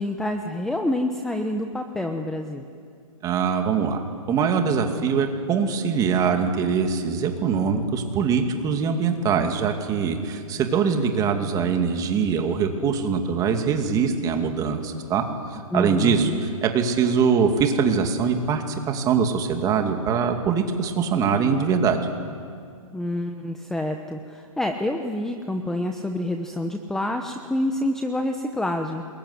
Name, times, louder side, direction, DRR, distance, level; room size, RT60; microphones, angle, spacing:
voice 1, 0.0-2.7 15.7-16.5 22.9-29.1, left 1 dB, 5° left, 5 dB, 1.0 m, -27 dB
voice 2, 3.2-15.2 15.7-22.0, right 6 dB, 20° right, 5 dB, 2.5 m, -23 dB
27.0 x 21.5 x 9.8 m, 2.3 s
hypercardioid pair, 150°, 18 cm